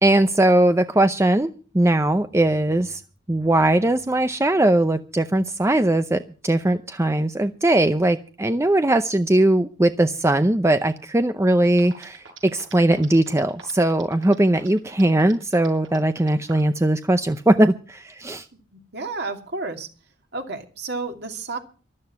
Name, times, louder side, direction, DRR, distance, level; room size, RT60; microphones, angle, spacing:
voice 1, 0.0-3.0 3.3-18.4, right 1 dB, 15° right, 9 dB, 0.6 m, -20 dB
sound 1, 11.4-11.5 11.8-16.7, right 5 dB, 85° right, 6.7 m, -44 dB
voice 2, 18.7-19.9 20.3-21.6, right 3 dB, 55° right, 4 dB, 2.6 m, -31 dB
14.0 x 12.5 x 5.8 m, 0.38 s
head